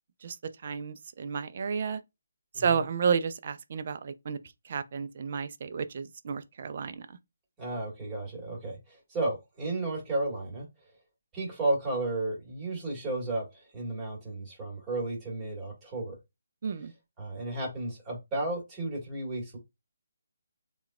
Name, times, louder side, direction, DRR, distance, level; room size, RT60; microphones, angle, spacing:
voice 1, 0.6-2.0 2.6-4.4 4.6-7.1 16.6-16.9, right 6 dB, 45° right, 0.4 m, -31 dB
voice 2, 7.6-10.7 11.3-16.2 17.2-19.6, right 2 dB, 15° right, 1.6 m, -33 dB
4.4 x 2.3 x 2.3 m
figure-of-eight pair, 145°, 0 cm